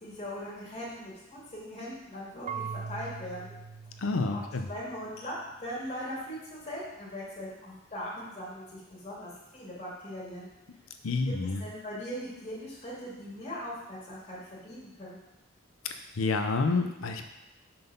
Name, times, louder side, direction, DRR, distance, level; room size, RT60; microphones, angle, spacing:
voice 1, 0.0-3.6 4.3-4.4 4.7-10.5 11.6-15.2, equal, 30° left, -7 dB, 2.1 m, -40 dB
Marimba xylophone / Wood, 2.5-5.3, right 6 dB, 35° right, 0.3 m, -41 dB
voice 2, 4.0-4.7 11.0-11.6 15.8-17.2, left 3 dB, 85° left, 6 dB, 0.6 m, -29 dB
5.8 x 3.9 x 5.3 m, 0.93 s
head